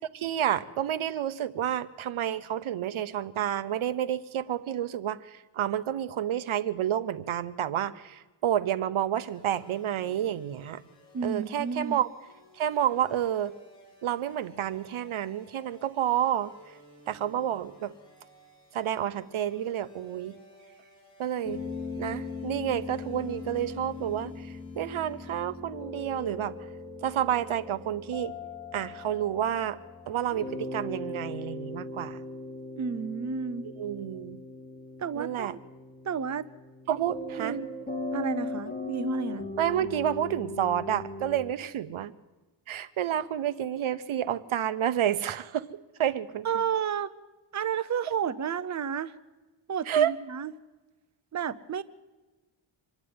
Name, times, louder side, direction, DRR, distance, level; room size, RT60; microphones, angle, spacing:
voice 1, 0.1-10.8 11.2-12.1 12.6-13.5 14.0-16.5 17.1-17.9 18.7-20.3 21.2-21.6 22.0-26.5 27.0-28.3 28.7-29.8 30.1-32.2 33.6-34.4 35.1-35.6 36.9-37.6 39.6-42.1 42.7-45.7 46.0-46.5 49.9-50.1, right 10 dB, 75° right, 15 dB, 0.9 m, -29 dB
sound 1, 9.2-25.6, equal, 35° left, 7.7 m, -56 dB
voice 2, 11.1-12.0 32.8-33.7 35.0-35.6 36.0-36.4 37.4-37.7 38.1-39.5 46.4-47.1 47.5-49.1 49.7-50.5 51.3-51.8, right 7 dB, 35° right, 13 dB, 0.7 m, -31 dB
sound 2, 21.4-41.4, left 3 dB, 20° left, 3.1 m, -39 dB
25.5 x 10.5 x 9.6 m, 1.2 s
cardioid pair, 100°, 49 cm